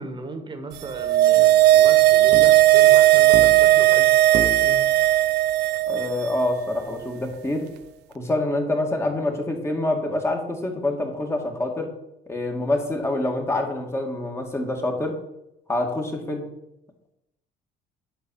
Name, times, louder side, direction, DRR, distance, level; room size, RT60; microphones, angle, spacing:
voice 1, 0.0-4.8, right 3 dB, 30° right, 7 dB, 1.5 m, -36 dB
sound 1, 0.8-6.3 6.6-6.7, right 15 dB, 85° right, 0.7 m, -16 dB
sound 2, 1.4-1.7 2.3-2.7 3.3-3.9 4.3-4.8 6.2-6.3, right 6 dB, 45° right, 1.0 m, -32 dB
voice 2, 5.9-7.7 8.1-11.9 12.3-15.2 15.7-16.4, left 2 dB, 15° left, 2 dB, 1.8 m, -26 dB
10.0 x 4.2 x 7.0 m, 0.86 s
cardioid pair, 110°, 17 cm